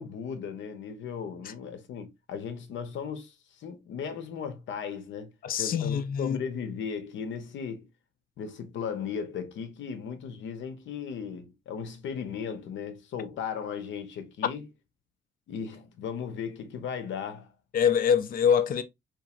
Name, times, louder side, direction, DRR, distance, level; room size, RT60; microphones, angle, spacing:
voice 1, 0.0-5.3 5.6-7.9 8.4-14.6 15.5-17.5, left 7 dB, 70° left, 0.8 m, -36 dB
voice 2, 5.4-6.4 17.7-18.8, left 7 dB, 45° left, 0.4 m, -24 dB
3.0 x 2.5 x 2.3 m
cardioid pair, 90°, 20 cm